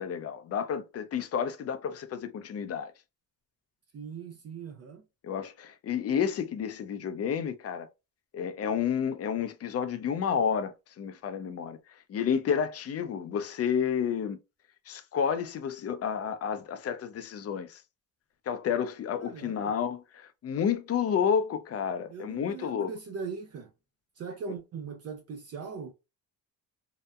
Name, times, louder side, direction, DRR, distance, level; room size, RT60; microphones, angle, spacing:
voice 1, 0.0-2.9 5.2-7.9 8.3-14.4 14.9-17.8 18.5-22.9, left 7 dB, 40° left, 0.4 m, -30 dB
voice 2, 3.9-5.0 19.2-19.7 22.1-23.7 24.2-25.9, right 5 dB, 40° right, 0.4 m, -40 dB
2.7 x 2.1 x 2.3 m
cardioid pair, 90°, 40 cm